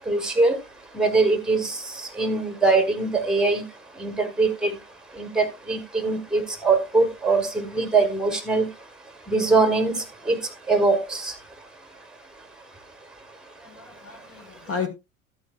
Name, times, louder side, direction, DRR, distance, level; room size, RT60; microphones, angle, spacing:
voice 1, 0.1-0.6 0.9-1.8 2.2-3.6 4.0-4.7 5.2-8.7 9.3-10.4 10.7-11.3, right 3 dB, ahead, 1.4 m, -22 dB
voice 2, 13.6-14.9, left 5 dB, 35° left, 1.7 m, -33 dB
13.0 x 8.6 x 2.4 m
figure-of-eight pair, 75°, 42 cm